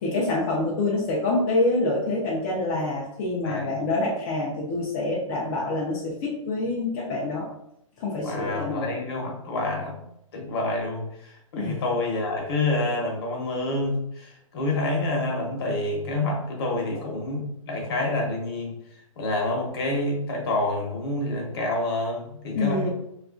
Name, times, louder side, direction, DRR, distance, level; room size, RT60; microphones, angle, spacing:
voice 1, 0.0-7.5 8.0-8.9 11.5-11.8 22.5-22.9, left 2 dB, 25° left, -5 dB, 0.4 m, -26 dB
voice 2, 3.4-3.8 8.2-10.0 10.3-18.8 19.2-22.9, left 2 dB, 45° left, 0 dB, 0.8 m, -28 dB
2.7 x 2.4 x 2.5 m, 0.77 s
hypercardioid pair, 155°, 18 cm